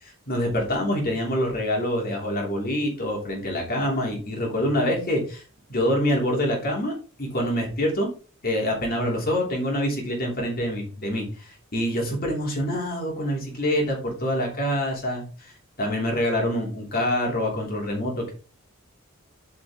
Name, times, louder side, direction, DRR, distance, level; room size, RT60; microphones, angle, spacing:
voice 1, 0.0-5.4 5.7-6.9 7.2-8.1 8.4-11.2 11.7-15.5 15.8-18.3, equal, 45° left, -1 dB, 2.9 m, -26 dB
8.3 x 5.1 x 3.6 m, 0.36 s
head